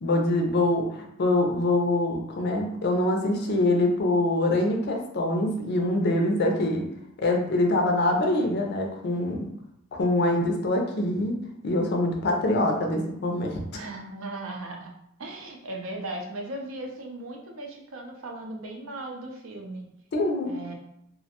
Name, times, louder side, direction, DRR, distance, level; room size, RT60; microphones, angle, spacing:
voice 1, 0.0-6.8 7.2-9.4 9.9-11.3 11.6-13.8 20.1-20.5, left 1 dB, 50° left, 2 dB, 0.4 m, -24 dB
voice 2, 13.7-14.9 15.2-19.9 20.4-20.7, right 2 dB, 65° right, 1 dB, 0.5 m, -37 dB
2.3 x 2.1 x 2.8 m, 0.76 s
head